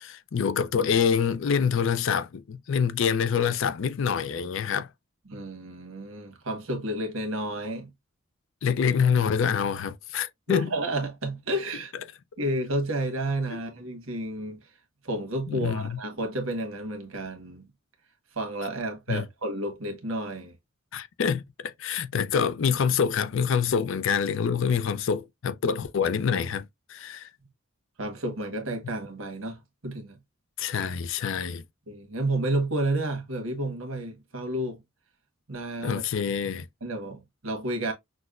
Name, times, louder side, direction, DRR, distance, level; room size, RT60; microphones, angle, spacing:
voice 1, 0.0-4.9 8.6-10.7 15.5-16.0 19.1-19.3 20.9-27.3 30.6-31.6 35.8-36.7, left 6 dB, 65° left, 0.4 m, -26 dB
voice 2, 5.3-7.9 10.5-11.9 12.4-14.6 15.0-17.7 18.3-20.5 28.0-30.2 31.9-34.8 35.5-36.0 36.8-37.9, right 1 dB, 75° right, 1.2 m, -31 dB
6.0 x 2.1 x 2.4 m
head